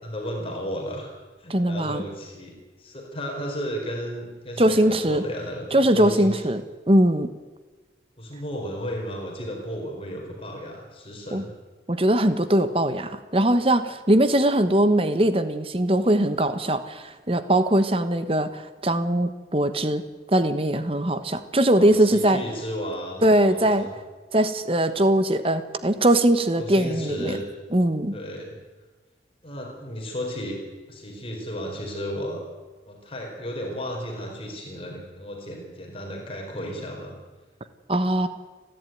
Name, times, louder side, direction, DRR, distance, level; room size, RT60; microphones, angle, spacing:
voice 1, 0.0-1.1 1.4-6.5 8.2-11.5 21.7-23.9 26.6-27.4 28.1-28.6 29.4-30.6 30.9-32.4 32.9-37.1, equal, 30° left, 0 dB, 4.5 m, -34 dB
voice 2, 1.5-2.0 4.6-5.2 5.7-7.3 11.3-11.4 11.9-20.0 20.3-22.4 23.2-23.9 24.3-27.4 27.7-28.2 37.9-38.3, right 1 dB, 30° right, 11 dB, 1.2 m, -21 dB
30.0 x 11.5 x 9.3 m, 1.3 s
head